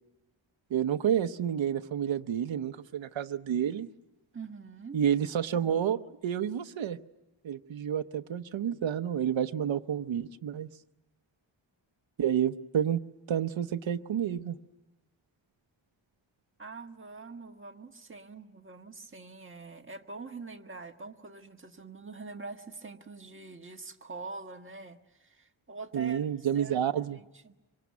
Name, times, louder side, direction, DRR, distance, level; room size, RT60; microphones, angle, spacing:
voice 1, 0.7-3.9 4.9-7.0 7.4-10.7 12.2-13.0 13.3-14.6 25.9-27.2, right 9 dB, 70° right, 8 dB, 0.9 m, -29 dB
voice 2, 4.3-5.0 16.6-26.2 26.5-26.8 27.1-27.5, right 3 dB, 25° right, 4 dB, 1.6 m, -44 dB
25.0 x 24.5 x 9.5 m, 1.0 s
wide cardioid pair, 145°, 47 cm